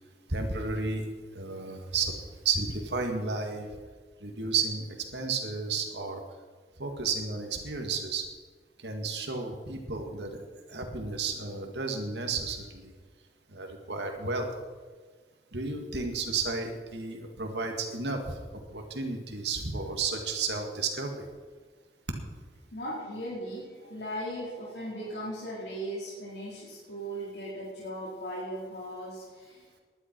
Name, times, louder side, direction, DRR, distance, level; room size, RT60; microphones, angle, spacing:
voice 1, 0.3-1.0 1.3-2.1 2.4-3.7 4.2-6.2 6.8-8.2 8.8-10.4 10.7-12.9 13.5-14.5 15.5-18.4 18.7-21.3, right 4 dB, 85° right, 3 dB, 2.1 m, -32 dB
voice 2, 22.7-29.7, equal, 85° left, -7 dB, 4.7 m, -38 dB
19.5 x 11.5 x 4.7 m, 1.5 s
head